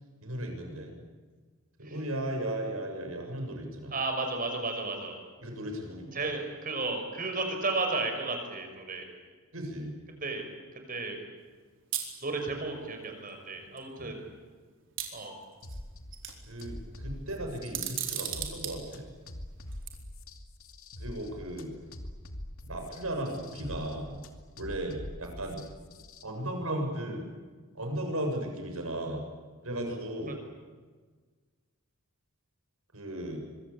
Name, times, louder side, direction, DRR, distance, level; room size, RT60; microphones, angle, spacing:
voice 1, 0.2-0.9 1.8-3.9 5.4-6.4 9.5-9.9 14.0-14.2 16.5-19.0 21.0-21.7 22.6-24.2 24.6-25.6 26.2-27.2 27.7-29.2 29.6-30.3 32.9-33.4, right 1 dB, 80° right, 3 dB, 7.3 m, -36 dB
voice 2, 3.9-5.2 6.1-9.1 10.2-10.5 10.9-11.2 12.2-14.2 15.1-15.4, right 3 dB, 40° right, 4 dB, 5.8 m, -33 dB
sound 1, 11.9-12.1 13.3-13.4 13.8-13.9 15.0-15.8 16.1-16.6 17.6-18.7 19.7-19.9, right 11 dB, 60° right, 4.5 m, -34 dB
sound 2, 15.6-26.2, left 1 dB, 75° left, 2.5 m, -44 dB
25.5 x 23.5 x 8.7 m, 1.4 s
head